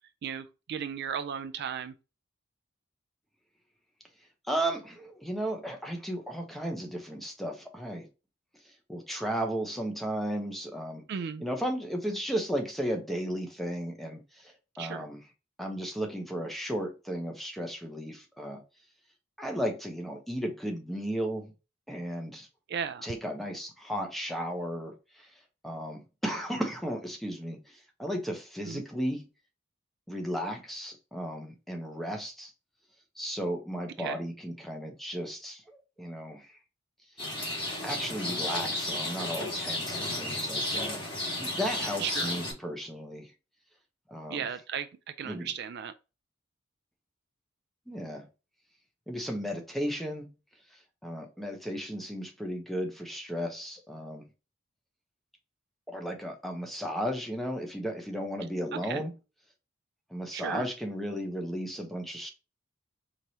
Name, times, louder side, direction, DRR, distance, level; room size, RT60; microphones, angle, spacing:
voice 1, 0.2-2.0 11.1-11.4 14.8-15.0 22.7-23.1 28.7-28.8 34.0-34.2 42.0-42.3 44.3-44.9 45.2-45.9 58.7-59.0 60.3-60.7, right 7 dB, 55° right, 0.3 m, -35 dB
voice 2, 4.5-8.1 8.9-11.0 11.4-15.2 15.6-18.6 19.4-21.5 21.9-22.5 23.0-24.9 25.6-27.6 28.0-29.2 30.1-32.5 33.2-36.5 37.8-41.0 41.4-43.3 44.1-44.4 45.3-45.5 47.9-48.2 49.1-50.3 51.0-54.3 55.9-59.1 60.1-62.3, equal, ahead, 0.7 m, -34 dB
Rain, 37.2-42.5, left 1 dB, 25° left, 1.9 m, -33 dB
4.6 x 3.0 x 2.7 m
head